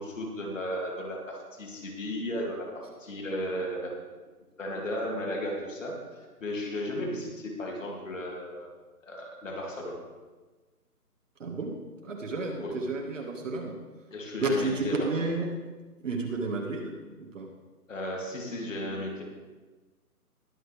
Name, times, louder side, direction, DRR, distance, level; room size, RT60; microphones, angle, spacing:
voice 1, 0.0-4.0 4.6-8.7 9.0-10.0 12.5-13.0 14.1-15.1 17.9-19.2, equal, 55° left, 0 dB, 3.0 m, -35 dB
voice 2, 11.4-11.8 12.0-13.8 14.4-15.5 16.0-17.5, right 3 dB, 55° right, 0 dB, 2.1 m, -31 dB
20.5 x 7.2 x 3.5 m, 1.3 s
figure-of-eight pair, 160°, 46 cm